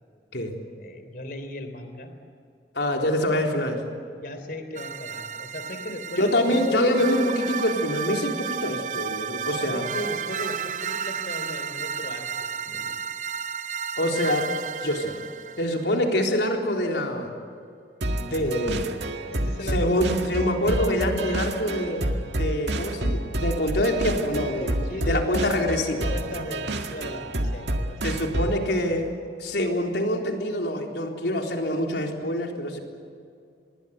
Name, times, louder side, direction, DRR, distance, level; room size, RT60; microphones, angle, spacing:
voice 1, 0.8-2.1 4.2-7.3 9.7-12.9 19.3-20.2 24.8-25.6 26.1-28.4, left 1 dB, 50° left, 8 dB, 3.6 m, -37 dB
voice 2, 2.7-3.8 6.2-9.8 14.0-14.5 14.8-15.2 15.6-17.3 18.2-19.0 19.7-26.1 28.0-29.1 29.4-32.8, left 1 dB, 75° left, 2 dB, 3.9 m, -25 dB
sound 1, 4.8-16.0, right 7 dB, 45° right, 0.7 m, -33 dB
sound 2, 18.0-28.7, right 1 dB, 85° right, 1.9 m, -29 dB
26.0 x 21.5 x 8.3 m, 2.4 s
head